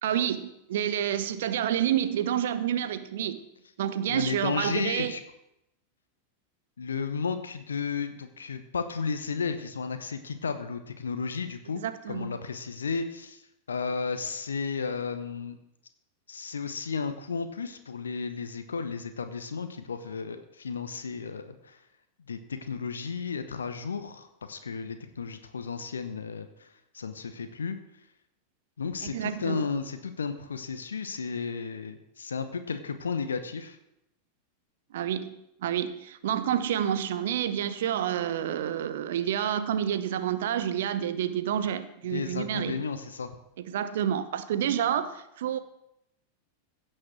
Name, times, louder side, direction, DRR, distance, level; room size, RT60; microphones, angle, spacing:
voice 1, 0.0-3.4 3.8-5.1 11.8-12.3 29.0-29.6 34.9-35.3 35.6-42.8 43.6-45.6, right 10 dB, 55° right, 12 dB, 0.9 m, -29 dB
voice 2, 4.1-5.2 6.8-11.8 12.1-13.4 13.7-15.6 16.3-21.8 22.3-26.7 26.9-27.8 28.8-33.8 42.1-43.3, left 5 dB, 70° left, 9 dB, 0.9 m, -33 dB
16.0 x 6.7 x 6.2 m, 0.81 s
figure-of-eight pair, 90°, 0 cm